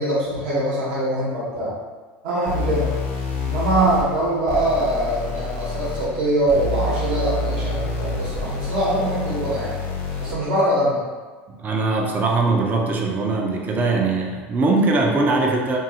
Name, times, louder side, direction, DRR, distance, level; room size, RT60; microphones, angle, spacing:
voice 1, 0.0-1.7 2.2-2.9 3.4-9.8 10.2-11.0, right 1 dB, 70° right, -6 dB, 1.2 m, -23 dB
sound 1, 2.5-10.5, left 3 dB, 50° left, 0.7 m, -28 dB
voice 2, 11.5-15.8, right 3 dB, 35° right, 1 dB, 0.6 m, -21 dB
2.7 x 2.6 x 2.8 m, 1.4 s
hypercardioid pair, 90°, 5 cm